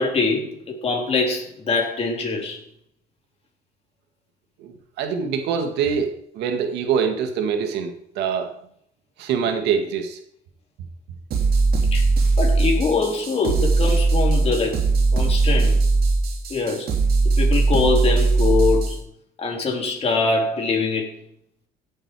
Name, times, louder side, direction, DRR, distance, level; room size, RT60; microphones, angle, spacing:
voice 1, 0.0-2.6 11.9-12.0 12.4-14.9 15.1-15.8 16.5-16.9 17.4-19.0 19.4-21.2, left 4 dB, 35° left, 3.6 m, -23 dB
voice 2, 4.6-8.5 9.2-10.2, right 6 dB, 85° right, 1.9 m, -24 dB
sound 1, 11.3-19.0, right 3 dB, 65° right, 3.3 m, -19 dB
16.5 x 7.8 x 4.8 m
cardioid pair, 110°, 17 cm